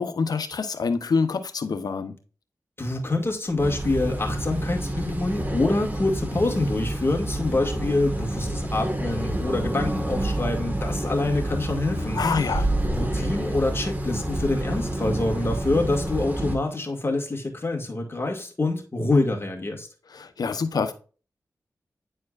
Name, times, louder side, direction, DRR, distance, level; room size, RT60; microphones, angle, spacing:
voice 1, 0.0-2.2 12.1-12.7 20.1-20.9, left 5 dB, 75° left, 0.9 m, -26 dB
voice 2, 2.8-12.2 12.9-19.9, left 2 dB, 35° left, 2.1 m, -26 dB
sound 1, 3.6-16.6, right 1 dB, 25° right, 1.8 m, -28 dB
9.7 x 4.4 x 2.5 m
cardioid pair, 40°, 7 cm